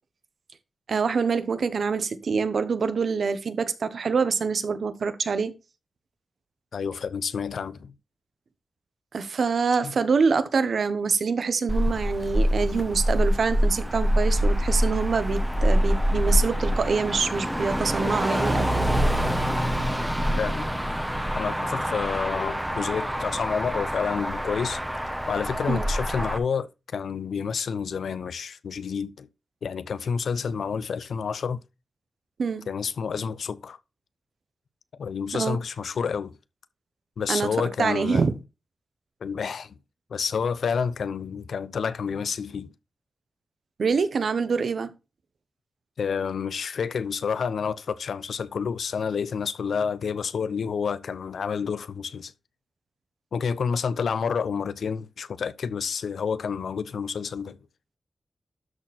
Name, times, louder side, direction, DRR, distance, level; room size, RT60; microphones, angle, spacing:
voice 1, 0.9-5.5 9.1-18.9 25.7-25.8 32.4-32.7 35.3-35.6 37.3-38.3 43.8-44.9, right 5 dB, 70° right, 1.0 m, -25 dB
voice 2, 6.7-7.9 9.8-9.9 20.4-20.7 21.3-24.8 25.3-29.3 29.6-31.6 32.7-33.8 35.0-36.4 37.2-38.3 39.2-39.8 40.1-42.7 46.0-52.3 53.3-57.6, left 6 dB, 90° left, 0.6 m, -29 dB
Motor vehicle (road), 11.7-26.4, equal, 5° right, 1.3 m, -25 dB
12.5 x 4.3 x 4.3 m
wide cardioid pair, 105°, 0 cm